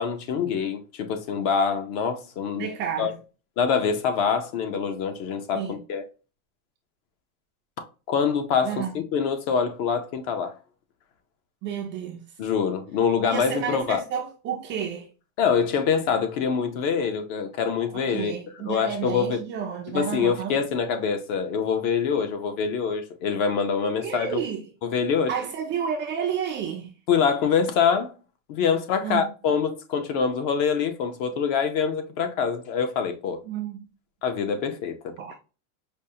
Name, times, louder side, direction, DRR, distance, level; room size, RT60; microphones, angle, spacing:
voice 1, 0.0-2.7 3.0-3.1 3.6-6.0 8.1-10.5 12.4-14.0 15.4-18.3 18.6-19.4 19.9-24.4 24.8-25.3 27.1-28.1 28.5-33.4 34.2-35.1, left 6 dB, 45° left, 0.7 m, -25 dB
voice 2, 2.6-3.2 5.5-5.8 8.6-8.9 11.6-12.3 13.3-15.1 17.9-20.6 24.0-24.6 25.3-26.9 29.0-29.3 33.4-33.9 35.2-35.4, right 8 dB, 30° right, 0.4 m, -31 dB
5.2 x 2.1 x 2.7 m
supercardioid pair, 150°, 43 cm